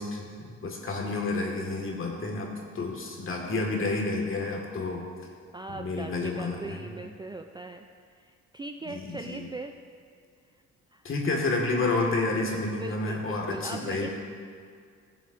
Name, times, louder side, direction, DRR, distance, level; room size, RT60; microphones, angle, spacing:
voice 1, 0.0-2.5 2.8-5.0 5.7-6.9 8.9-9.4 11.0-14.1, left 3 dB, 45° left, 0 dB, 1.9 m, -30 dB
voice 2, 5.5-7.9 8.2-9.8 10.9-11.0 11.7-12.0 12.6-14.1, right 2 dB, 15° right, 4 dB, 0.4 m, -40 dB
15.0 x 7.1 x 2.6 m, 2.2 s
cardioid pair, 90°, 30 cm